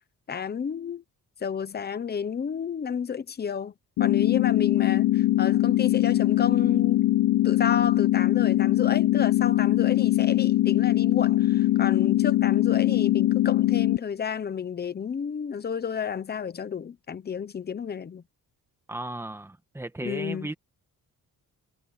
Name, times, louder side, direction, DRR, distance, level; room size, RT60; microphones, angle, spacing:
voice 1, 0.3-1.0 1.4-3.7 4.0-7.1 7.4-18.2 20.0-20.5, left 7 dB, 30° left, 0.9 m, -31 dB
sound 1, 4.0-14.0, left 15 dB, 65° left, 0.6 m, -22 dB
voice 2, 18.9-20.5, right 2 dB, 5° right, 1.6 m, -35 dB
wide cardioid pair, 175°, 34 cm